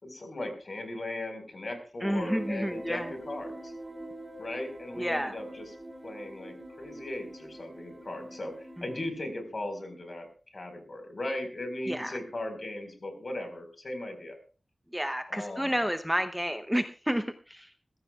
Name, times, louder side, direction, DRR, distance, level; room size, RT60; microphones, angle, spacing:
voice 1, 0.0-3.7 4.4-5.7 6.0-10.3 10.5-14.4 15.3-15.8, left 1 dB, 50° left, 6 dB, 4.6 m, -38 dB
voice 2, 2.0-3.1 5.0-5.3 11.9-12.2 14.9-17.7, equal, 5° right, 8 dB, 0.8 m, -30 dB
sound 1, 2.1-9.1, right 1 dB, 25° right, 2.9 m, -44 dB
22.0 x 14.5 x 2.4 m, 0.37 s
wide cardioid pair, 90°, 0 cm